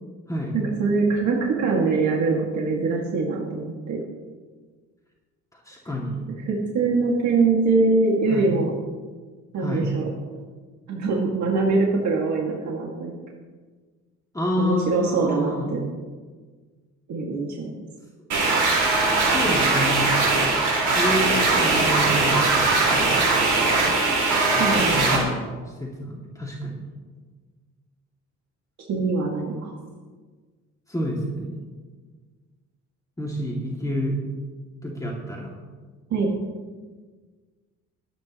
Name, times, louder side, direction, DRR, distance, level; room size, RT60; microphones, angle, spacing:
voice 1, 0.5-4.0 6.5-8.7 9.5-10.0 10.9-13.1 14.6-15.8 17.1-17.7 24.4-25.3 28.9-29.7 36.1-36.3, right 3 dB, 65° right, -2 dB, 2.2 m, -23 dB
voice 2, 5.7-6.3 8.3-8.5 9.6-9.9 14.3-15.7 19.3-20.3 20.9-23.8 24.5-25.5 25.8-26.8 30.9-31.6 33.2-34.2 34.8-35.5, left 1 dB, 10° left, -3 dB, 2.4 m, -29 dB
sound 1, 18.3-25.2, right 3 dB, 90° right, 4.7 m, -20 dB
26.0 x 9.6 x 3.1 m, 1.4 s
cardioid pair, 90°, 30 cm